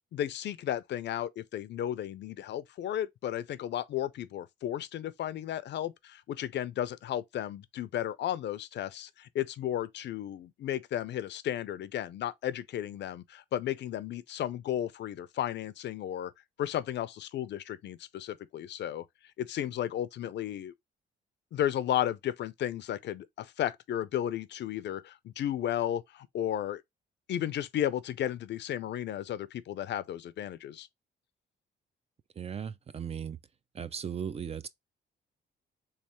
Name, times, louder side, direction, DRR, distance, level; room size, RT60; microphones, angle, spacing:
voice 1, 0.1-16.3 16.6-19.0 19.4-20.7 21.5-26.8 27.3-30.9, left 11 dB, 60° left, 0.5 m, -34 dB
voice 2, 32.4-33.4 33.7-34.7, right 7 dB, 30° right, 0.3 m, -37 dB
3.5 x 3.3 x 2.9 m
cardioid pair, 90°, 20 cm